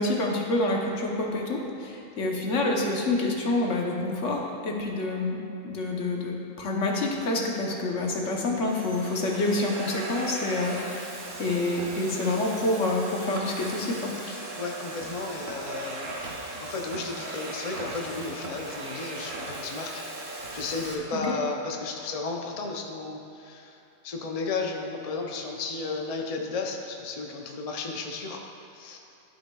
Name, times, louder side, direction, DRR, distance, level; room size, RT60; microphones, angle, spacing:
voice 1, 0.0-11.1 11.4-14.1, left 2 dB, 65° left, 0 dB, 1.2 m, -27 dB
Domestic sounds home sounds, 7.1-7.5 8.2-20.9, right 2 dB, 65° right, 1.3 m, -38 dB
voice 2, 14.2-16.2 16.6-23.8 24.0-28.4 28.7-29.0, left 3 dB, 45° left, 1 dB, 0.5 m, -34 dB
13.0 x 5.8 x 2.3 m, 2.8 s
omnidirectional pair, 1.4 m